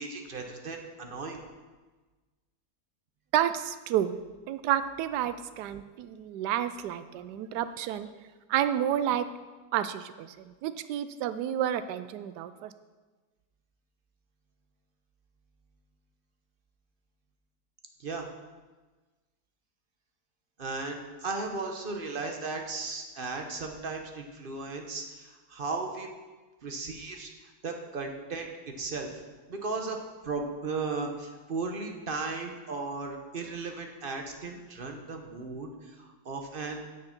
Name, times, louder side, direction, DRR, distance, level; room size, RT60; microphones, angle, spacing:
voice 1, 0.0-1.4 18.0-18.3 20.6-26.1 26.6-28.5 28.7-29.1 29.5-30.0 30.2-36.8, right 3 dB, 40° right, 3 dB, 1.0 m, -36 dB
voice 2, 3.3-4.2 4.5-8.1 8.5-9.3 9.7-12.7, right 11 dB, 80° right, 12 dB, 1.2 m, -30 dB
9.6 x 6.6 x 5.9 m, 1.3 s
omnidirectional pair, 1.8 m